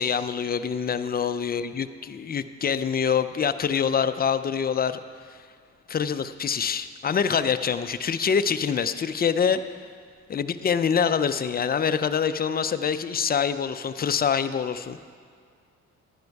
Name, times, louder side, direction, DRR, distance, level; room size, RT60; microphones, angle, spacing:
voice 1, 0.0-5.0 5.9-9.6 10.3-15.0, left 7 dB, 30° left, 11 dB, 0.5 m, -25 dB
11.0 x 10.5 x 4.7 m, 2.1 s
cardioid pair, 90°, 30 cm